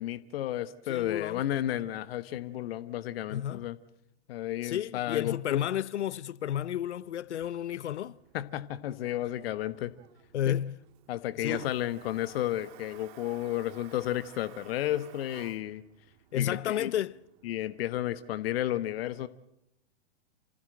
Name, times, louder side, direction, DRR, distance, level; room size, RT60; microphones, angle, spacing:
voice 1, 0.0-3.8 4.3-5.6 8.3-9.9 10.5-10.6 11.1-15.8 16.3-16.9 17.4-19.3, left 13 dB, 55° left, 1.2 m, -32 dB
voice 2, 0.9-1.4 3.3-3.6 4.6-8.2 10.3-10.7 11.4-11.7 16.3-17.2, left 10 dB, 70° left, 0.7 m, -32 dB
Toilet flush, 6.5-18.0, right 13 dB, 45° right, 1.6 m, -54 dB
28.5 x 15.5 x 7.8 m
hypercardioid pair, 115°, 35 cm